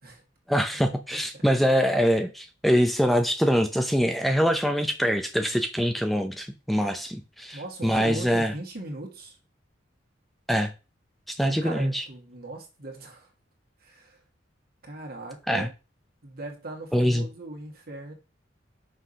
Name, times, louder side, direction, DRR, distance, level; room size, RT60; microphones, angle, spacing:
voice 1, 0.5-8.5 10.5-10.7 11.3-12.0 15.5-15.7 16.9-17.3, equal, ahead, 0.7 m, -24 dB
voice 2, 1.1-1.4 7.5-9.4 11.4-13.3 13.8-14.2 14.8-15.7 16.2-18.2, right 2 dB, 55° right, 2.2 m, -39 dB
6.3 x 4.8 x 5.6 m
head